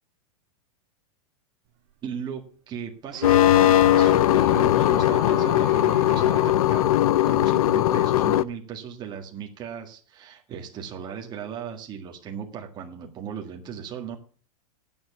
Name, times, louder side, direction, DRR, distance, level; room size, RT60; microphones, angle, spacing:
voice 1, 2.0-7.0 7.3-14.2, right 7 dB, 25° right, 1 dB, 1.7 m, -37 dB
sound 1, 3.1-6.7 8.0-8.1, right 12 dB, 50° right, 1.5 m, -37 dB
sound 2, 3.2-8.4, left 13 dB, 80° left, 0.6 m, -19 dB
9.4 x 7.2 x 8.1 m, 0.43 s
supercardioid pair, 145°, 18 cm